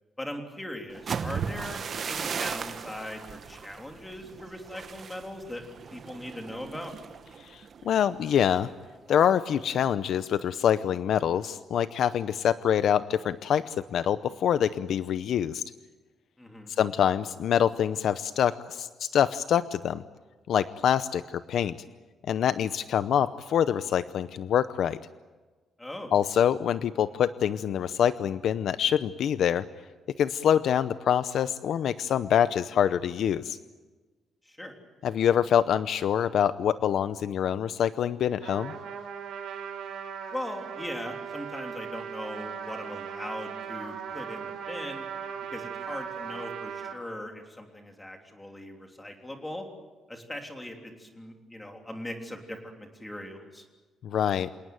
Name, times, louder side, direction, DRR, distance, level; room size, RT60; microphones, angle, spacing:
voice 1, 0.2-5.6 5.9-6.9 16.4-16.7 25.8-26.1 34.4-34.7 40.3-45.0 45.5-49.6 50.1-53.6, left 1 dB, 10° left, 3 dB, 3.4 m, -39 dB
sound 1, 0.9-8.8 9.1-9.4 9.8-10.2, right 6 dB, 40° right, 1.1 m, -37 dB
voice 2, 7.5-8.7 9.1-15.6 16.8-20.0 20.5-21.8 22.3-25.0 26.1-29.6 30.2-33.6 35.0-38.7 54.0-54.5, left 9 dB, 60° left, 13 dB, 0.7 m, -25 dB
Trumpet, 38.4-47.0, right 7 dB, 70° right, 4.6 m, -38 dB
27.5 x 18.5 x 9.2 m, 1.3 s
cardioid pair, 160°, 0 cm